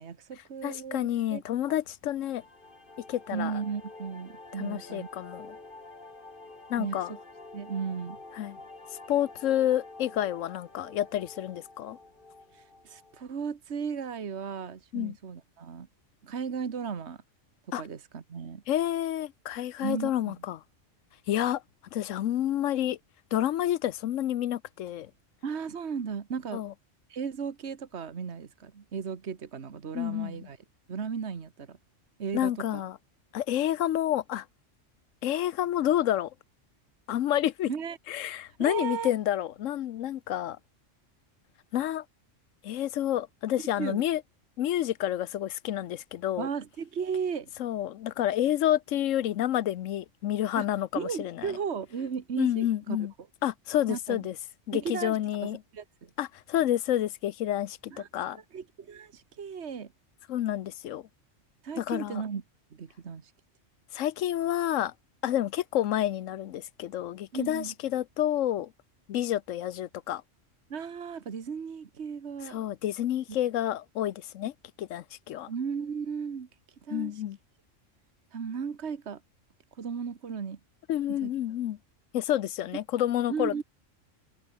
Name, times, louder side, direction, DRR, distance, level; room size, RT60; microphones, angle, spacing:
voice 1, 0.0-1.4 3.3-5.1 6.8-7.2 7.5-8.2 12.5-15.9 16.2-17.2 17.8-18.6 19.8-20.4 25.4-26.6 27.1-30.6 30.9-31.8 32.2-32.8 37.7-38.0 38.6-39.1 43.8-44.0 46.4-47.5 50.5-50.7 50.9-53.0 53.9-54.3 54.7-56.1 57.9-59.9 61.6-62.4 62.7-63.3 67.3-67.7 70.7-72.6 75.5-76.5 76.8-77.2 78.3-79.2 79.8-80.6 81.1-81.6 83.3-83.6, right 6 dB, 60° right, 1.7 m, -35 dB
voice 2, 0.6-2.4 3.1-3.5 4.6-5.5 6.7-7.1 8.4-8.6 9.1-12.0 14.9-15.2 17.7-17.8 18.7-20.6 21.3-21.6 21.9-23.0 23.3-25.1 26.5-26.7 29.9-30.5 32.3-33.0 33.3-34.4 35.2-36.3 37.1-37.7 38.1-40.6 41.7-42.0 42.6-44.2 44.6-46.5 47.6-51.5 52.4-53.1 53.4-54.3 54.7-55.6 56.2-58.4 60.3-61.0 61.8-62.2 63.9-64.9 65.2-68.7 69.1-70.2 72.5-74.5 74.8-75.5 76.9-77.4 80.9-81.8 82.1-83.6, left 12 dB, 75° left, 1.0 m, -29 dB
sound 1, 2.2-13.2, left 2 dB, 40° left, 3.0 m, -48 dB
omnidirectional pair, 1.3 m